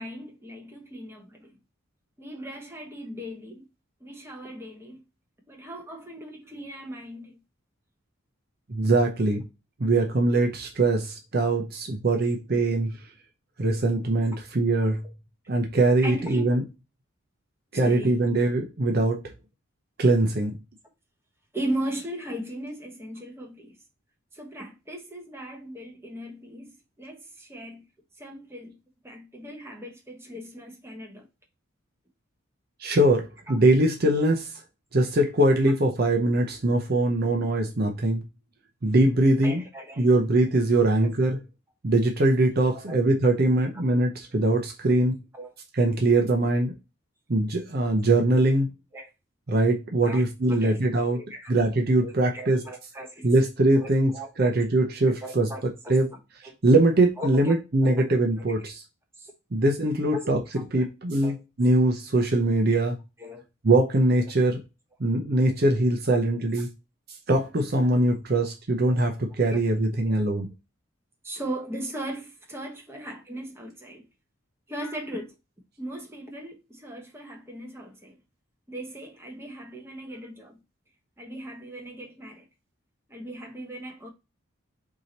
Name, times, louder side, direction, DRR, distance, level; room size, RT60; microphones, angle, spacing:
voice 1, 0.0-1.5 2.2-3.6 4.0-5.0 5.5-7.4 9.9-10.1 11.7-11.8 15.0-15.1 16.0-16.6 17.7-18.2 21.5-23.7 24.3-27.8 28.2-28.8 29.0-31.3 33.5-33.6 37.8-37.9 39.4-40.1 40.8-41.1 42.6-42.9 43.7-43.8 45.3-45.5 48.9-49.1 50.0-51.6 52.0-53.4 53.7-54.6 55.1-56.5 57.2-58.0 58.6-58.7 59.2-59.3 60.1-60.3 60.5-60.9 61.2-61.4 62.1-62.2 62.8-63.4 64.2-64.3 66.4-66.5 69.5-69.7 70.0-70.3 71.2-74.1 74.7-75.3 75.8-78.2 78.7-80.6 81.2-82.5 83.1-84.1, right 1 dB, 10° right, 1.1 m, -38 dB
voice 2, 8.7-9.4 9.8-13.0 13.6-15.0 15.5-16.6 17.7-19.2 20.0-20.5 32.8-34.5 34.9-38.2 38.8-39.6 40.0-41.4 41.8-45.2 45.7-46.7 47.3-48.7 49.5-51.2 51.5-52.6 53.2-54.1 54.4-55.5 55.9-56.1 56.6-58.8 59.5-60.4 60.7-63.0 63.6-64.6 65.0-66.7 67.3-70.5, right 2 dB, 45° right, 0.6 m, -22 dB
4.8 x 2.8 x 3.9 m
head